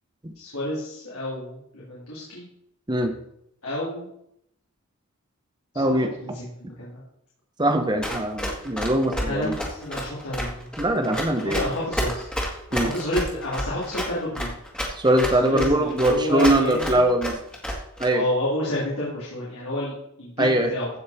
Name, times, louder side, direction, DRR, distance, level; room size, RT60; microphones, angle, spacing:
voice 1, 0.4-2.5 3.6-4.1 5.7-5.9 6.2-7.0 9.2-10.7 11.4-12.3 12.7-14.5 15.4-17.1 18.1-20.9, left 1 dB, 80° left, -7 dB, 3.6 m, -30 dB
voice 2, 5.7-6.1 7.6-9.5 10.8-11.6 12.7-12.9 14.9-17.4 18.0-18.2 20.4-20.7, right 1 dB, 20° right, 6 dB, 1.1 m, -22 dB
Run, 8.0-18.1, equal, 5° left, 1.9 m, -29 dB
15.0 x 5.9 x 4.5 m, 0.76 s
head